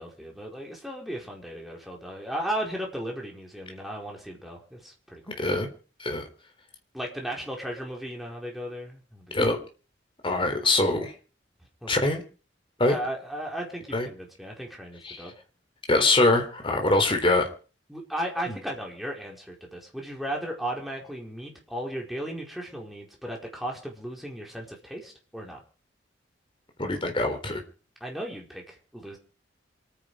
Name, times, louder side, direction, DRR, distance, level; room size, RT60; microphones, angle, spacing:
voice 1, 0.0-5.4 6.9-9.4 11.8-12.1 12.8-15.3 17.9-25.6 28.0-29.2, right 1 dB, ahead, -1 dB, 4.8 m, -36 dB
voice 2, 5.4-5.7 6.0-6.2 9.3-9.6 10.2-11.1 11.9-12.2 12.8-13.0 13.9-14.1 15.0-15.3 15.9-17.5 18.5-18.6 26.8-27.6, left 2 dB, 25° left, 4 dB, 3.8 m, -23 dB
27.0 x 9.9 x 5.0 m, 0.38 s
head